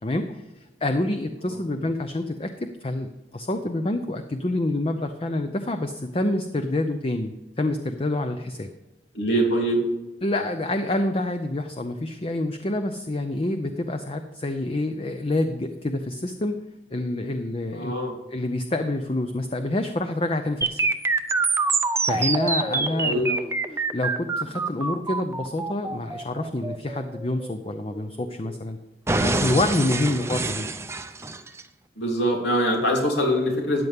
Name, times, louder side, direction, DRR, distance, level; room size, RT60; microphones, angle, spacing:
voice 1, 0.0-2.5 2.8-8.7 10.2-16.6 16.9-17.9 18.3-20.9 22.0-23.4 23.7-28.8 29.2-30.7, left 2 dB, 30° left, 7 dB, 0.6 m, -27 dB
voice 2, 9.1-9.8 17.7-18.2 22.6-23.3 30.0-30.2 32.0-33.8, equal, 90° left, 0 dB, 3.1 m, -24 dB
sound 1, 20.6-28.6 29.1-31.6, right 3 dB, 15° right, 0.5 m, -26 dB
13.5 x 9.4 x 3.6 m, 1.1 s
head